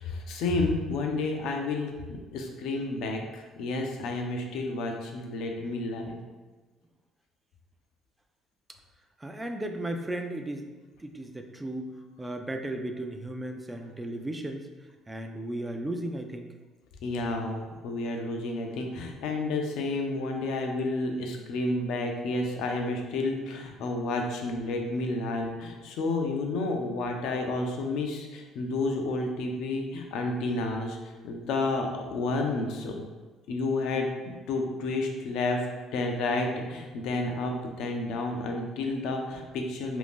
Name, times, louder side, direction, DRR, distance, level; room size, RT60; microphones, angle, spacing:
voice 1, 0.0-6.2 17.0-31.0 31.2-33.1 33.5-40.0, left 2 dB, 75° left, 2 dB, 0.5 m, -30 dB
voice 2, 9.2-10.7 11.0-14.7 15.1-16.5, right 1 dB, 15° right, 5 dB, 0.4 m, -35 dB
2.6 x 2.5 x 3.5 m, 1.3 s
supercardioid pair, 80°, 0 cm